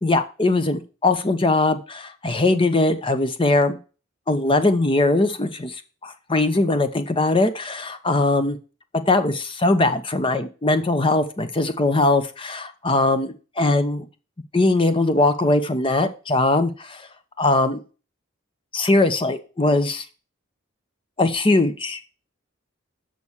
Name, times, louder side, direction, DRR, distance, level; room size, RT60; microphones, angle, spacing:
voice 1, 0.0-3.8 4.3-8.6 9.1-14.1 14.5-17.0 17.4-17.8 18.7-20.0 21.2-22.0, left 2 dB, 25° left, 10 dB, 0.8 m, -21 dB
6.4 x 6.2 x 7.1 m, 0.35 s
head